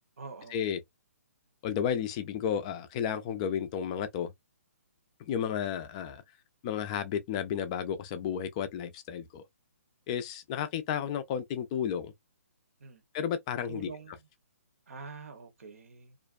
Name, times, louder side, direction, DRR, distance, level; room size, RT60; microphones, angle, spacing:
voice 1, 0.2-0.6 12.8-13.0 13.6-14.3 14.9-16.2, right 5 dB, 65° right, 0.9 m, -45 dB
voice 2, 1.6-4.3 5.2-6.2 6.6-9.4 10.1-12.1 13.1-13.9, left 8 dB, 25° left, 0.4 m, -32 dB
2.5 x 2.1 x 2.4 m
hypercardioid pair, 150°, 8 cm